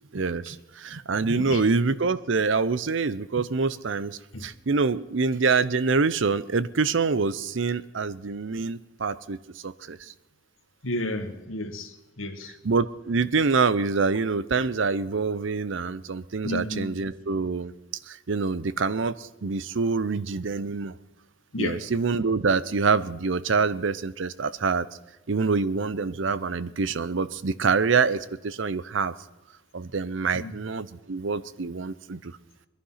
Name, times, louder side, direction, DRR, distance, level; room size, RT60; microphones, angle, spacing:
voice 1, 0.1-9.4 9.6-10.0 12.6-17.7 18.1-20.9 21.6-24.9 25.3-29.1 29.7-32.4, right 4 dB, 65° right, 16 dB, 0.6 m, -26 dB
voice 2, 10.8-12.6 16.4-16.9 21.5-21.8 30.3-30.5, left 1 dB, 80° left, 6 dB, 1.8 m, -32 dB
21.0 x 11.5 x 5.7 m, 1.1 s
head